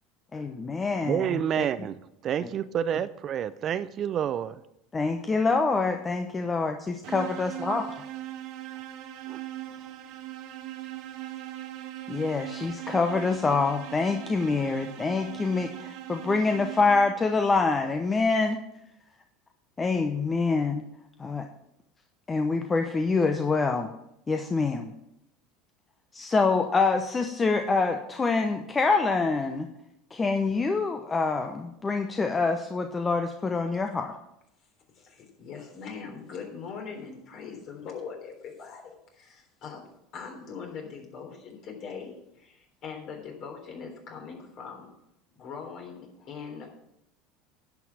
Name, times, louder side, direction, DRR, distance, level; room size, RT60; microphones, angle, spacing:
voice 1, 0.3-1.7 2.4-2.5 4.9-6.8 7.1-7.8 12.1-18.6 19.8-20.8 21.2-21.5 22.3-23.9 24.3-24.9 26.1-29.7 30.1-34.1, left 4 dB, 25° left, 0.9 m, -26 dB
voice 2, 1.1-4.6 9.3-9.4, right 9 dB, 45° right, 0.5 m, -29 dB
sound 1, 7.0-17.4, right 13 dB, 60° right, 1.2 m, -40 dB
voice 3, 35.0-39.9 40.1-44.9 45.3-46.7, left 6 dB, 50° left, 3.5 m, -41 dB
10.5 x 5.9 x 7.1 m
hypercardioid pair, 80°, 0 cm